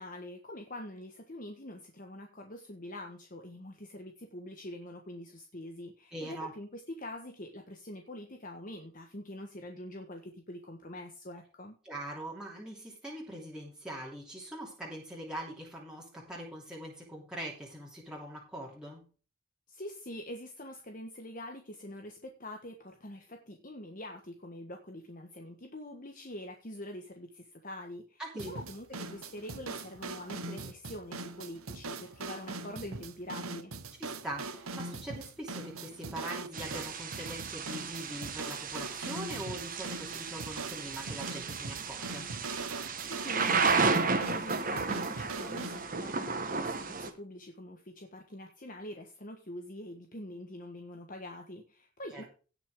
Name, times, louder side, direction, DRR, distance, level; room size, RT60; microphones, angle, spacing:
voice 1, 0.0-11.8 19.7-33.7 43.0-52.2, left 1 dB, 40° left, 4 dB, 1.3 m, -45 dB
voice 2, 6.1-6.5 11.8-19.1 28.2-28.5 34.0-42.3 52.1-52.2, right 1 dB, 5° right, -4 dB, 2.9 m, -42 dB
sound 1, 28.4-45.8, right 3 dB, 80° right, 1.2 m, -41 dB
Thunder / Rain, 36.5-47.1, right 4 dB, 40° right, 1.4 m, -33 dB
17.5 x 5.9 x 3.6 m, 0.36 s
head